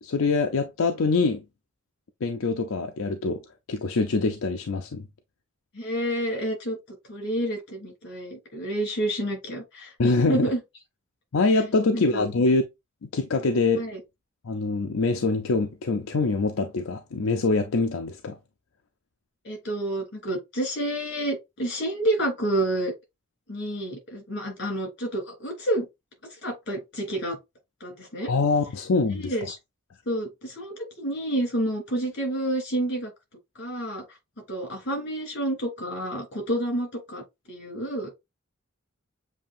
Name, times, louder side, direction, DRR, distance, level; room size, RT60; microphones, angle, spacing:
voice 1, 0.0-1.4 2.2-3.4 3.7-5.1 10.0-10.5 11.3-12.6 13.0-13.9 14.4-18.4 28.3-29.3, left 3 dB, 85° left, 0.6 m, -24 dB
voice 2, 5.7-10.6 11.9-12.2 13.7-14.0 19.4-22.9 23.5-25.9 26.4-27.4 27.8-28.3 29.1-29.6 30.0-33.1 33.6-34.0 34.5-38.1, right 1 dB, 60° left, 3.0 m, -29 dB
7.2 x 2.8 x 2.5 m
head